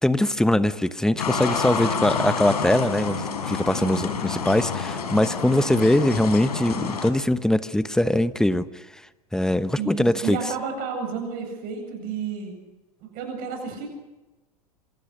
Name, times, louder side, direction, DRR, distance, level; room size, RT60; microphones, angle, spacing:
voice 1, 0.0-8.8 9.3-10.4, left 1 dB, 5° left, 13 dB, 1.1 m, -22 dB
sound 1, 1.2-7.1, left 5 dB, 75° left, 4.4 m, -28 dB
voice 2, 9.7-12.5 13.0-13.9, right 5 dB, 45° right, 5 dB, 8.0 m, -31 dB
27.0 x 26.5 x 6.5 m, 1.1 s
hypercardioid pair, 95°, 20 cm